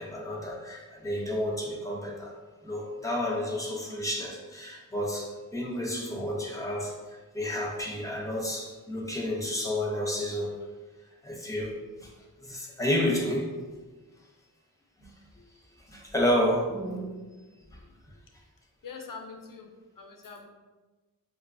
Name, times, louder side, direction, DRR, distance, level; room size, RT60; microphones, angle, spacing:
voice 1, 0.0-2.3 2.6-10.6 11.2-11.7 12.0-12.1 12.4-13.5 15.0-15.1 15.9-17.2 17.7-17.8, left 1 dB, 10° left, -2 dB, 0.7 m, -30 dB
voice 2, 18.8-19.7 20.0-20.5, left 5 dB, 60° left, 3 dB, 0.5 m, -43 dB
4.4 x 2.2 x 2.5 m, 1.2 s
wide cardioid pair, 45°, 37 cm